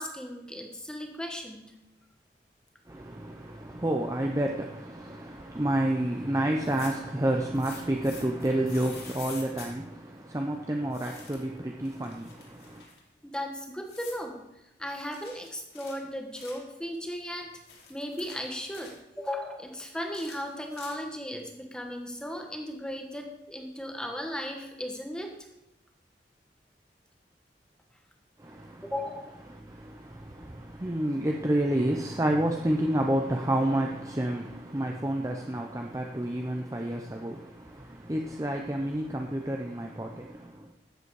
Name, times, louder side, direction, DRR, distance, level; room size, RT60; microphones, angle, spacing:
voice 1, 0.0-1.7 13.2-14.4 14.8-17.5 17.9-25.3 28.8-29.3, equal, 5° left, 3 dB, 1.3 m, -36 dB
voice 2, 2.9-12.8 28.4-28.9 29.5-40.7, right 1 dB, 20° right, 2 dB, 0.7 m, -30 dB
sound 1, 6.6-7.1 7.5-9.7 10.9-11.5 11.8-13.0 13.8-14.2 15.1-16.7 17.4-19.0 20.0-21.2, left 5 dB, 65° left, 3.0 m, -47 dB
12.5 x 8.0 x 4.8 m, 0.91 s
head